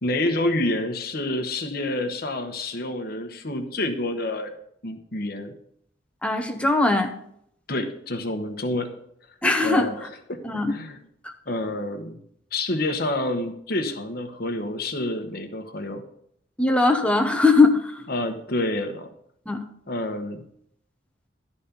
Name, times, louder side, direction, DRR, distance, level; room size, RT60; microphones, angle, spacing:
voice 1, 0.0-4.5 4.8-5.5 7.7-9.0 9.6-10.0 10.3-10.4 10.7-11.0 11.5-12.2 12.5-16.0 18.1-19.1 19.9-20.4, left 1 dB, 55° left, 6 dB, 1.1 m, -28 dB
voice 2, 6.2-7.1 9.4-9.9 10.4-10.7 11.2-11.3 16.6-18.1 19.5-19.6, left 3 dB, 5° left, 4 dB, 0.9 m, -20 dB
11.5 x 4.2 x 6.8 m, 0.72 s
head